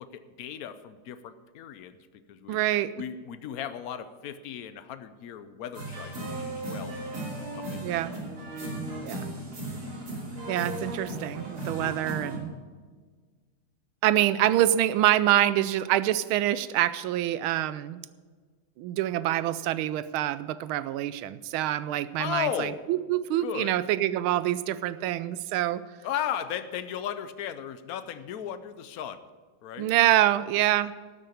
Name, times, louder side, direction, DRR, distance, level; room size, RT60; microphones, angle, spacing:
voice 1, 0.0-2.6 3.0-7.0 7.5-7.8 8.1-8.3 22.2-22.8 23.4-23.7 26.0-29.2 29.6-29.9, left 9 dB, 80° left, 12 dB, 0.8 m, -36 dB
voice 2, 2.5-2.9 7.8-8.1 9.0-9.3 10.5-12.5 14.0-18.1 18.8-25.8 29.8-30.9, right 13 dB, 80° right, 15 dB, 1.4 m, -26 dB
sound 1, 5.7-12.4, right 1 dB, 45° right, 3.3 m, -36 dB
12.5 x 6.7 x 8.6 m, 1.5 s
omnidirectional pair, 2.3 m